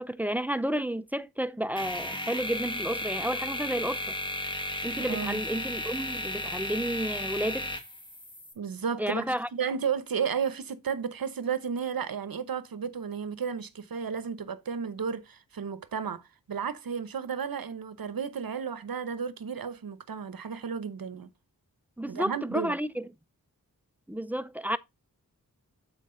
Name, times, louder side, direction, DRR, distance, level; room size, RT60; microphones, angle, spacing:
voice 1, 0.0-4.1 4.8-7.7 9.0-9.5 22.0-23.1 24.1-24.8, right 1 dB, 5° right, 0.5 m, -31 dB
sound 1, 1.8-8.5, left 1 dB, 15° left, 1.6 m, -34 dB
voice 2, 5.0-5.4 8.6-16.2 16.5-21.3 22.1-22.8, right 6 dB, 70° right, 0.8 m, -33 dB
7.5 x 4.7 x 3.7 m
wide cardioid pair, 50°, 36 cm